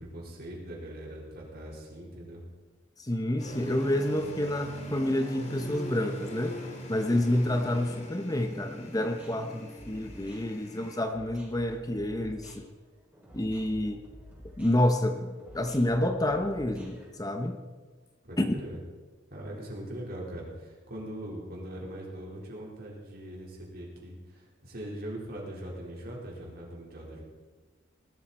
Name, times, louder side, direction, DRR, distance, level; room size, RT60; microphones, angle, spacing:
voice 1, 0.0-2.4 18.3-18.8 19.3-27.2, right 1 dB, 55° right, -3 dB, 4.2 m, -41 dB
voice 2, 3.0-6.6 6.9-12.6 13.3-14.0 14.6-17.6 18.4-18.5, left 1 dB, 20° left, 6 dB, 0.9 m, -28 dB
sound 1, 3.4-11.0, equal, 35° left, 2.2 m, -42 dB
sound 2, 9.0-17.1, equal, 10° right, 4.5 m, -50 dB
19.0 x 13.0 x 4.3 m, 1.3 s
head